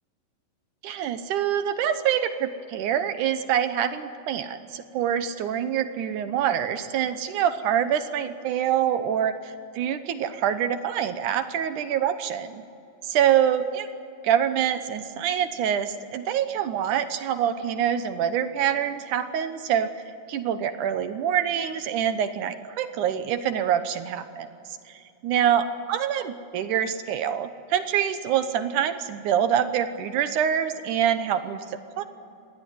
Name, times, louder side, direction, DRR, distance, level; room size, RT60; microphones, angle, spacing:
voice 1, 0.8-12.6 13.0-13.9 14.2-19.9 20.3-24.5 24.9-32.0, right 9 dB, 70° right, 10 dB, 2.2 m, -25 dB
26.0 x 19.0 x 9.6 m, 2.5 s
omnidirectional pair, 4.2 m